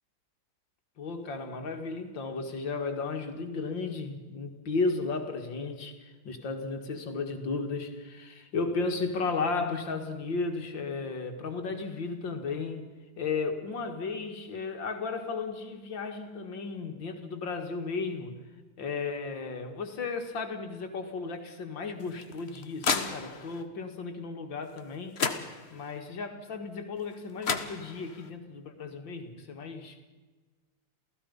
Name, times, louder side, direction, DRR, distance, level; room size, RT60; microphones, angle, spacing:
voice 1, 1.0-12.9 13.2-18.4 18.8-25.2 25.7-30.0, left 4 dB, 70° left, 5 dB, 2.7 m, -34 dB
sound 1, 22.0-23.6 24.8-24.9 25.2-26.0 27.1-27.2 27.4-28.3, left 5 dB, 35° left, 1.3 m, -32 dB
28.5 x 17.0 x 5.4 m, 1.3 s
omnidirectional pair, 2.1 m